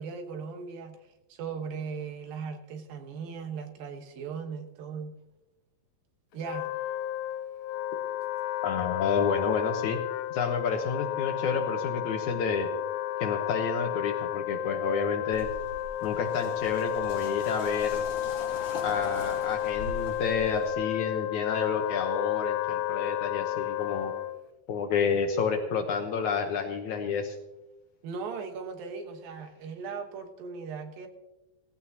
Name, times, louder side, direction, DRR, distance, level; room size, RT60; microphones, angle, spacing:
voice 1, 0.0-5.2 6.3-6.7 28.0-31.1, right 5 dB, 75° right, 5 dB, 3.0 m, -38 dB
Wind instrument woodwind instrument, 6.3-24.5, left 13 dB, 85° left, 1.8 m, -32 dB
voice 2, 8.6-10.0 10.3-12.7 13.2-15.5 16.0-18.0 18.8-24.1 24.7-27.4, left 5 dB, 70° left, 5 dB, 2.0 m, -29 dB
sound 1, 15.3-20.7, left 2 dB, 40° left, 3.4 m, -41 dB
17.0 x 15.5 x 2.8 m, 0.97 s
omnidirectional pair, 4.2 m